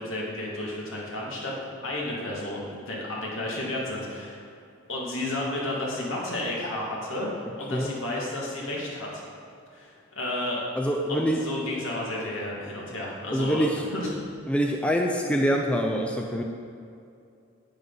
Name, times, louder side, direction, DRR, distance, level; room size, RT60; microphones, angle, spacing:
voice 1, 0.0-1.5 1.8-4.4 4.9-9.2 9.7-10.6 11.1-13.7 13.9-14.1, left 1 dB, 75° left, -4 dB, 2.4 m, -32 dB
voice 2, 10.8-11.4 13.3-13.9 14.5-16.4, equal, 5° left, 1 dB, 0.5 m, -25 dB
10.0 x 9.5 x 4.0 m, 2.4 s
head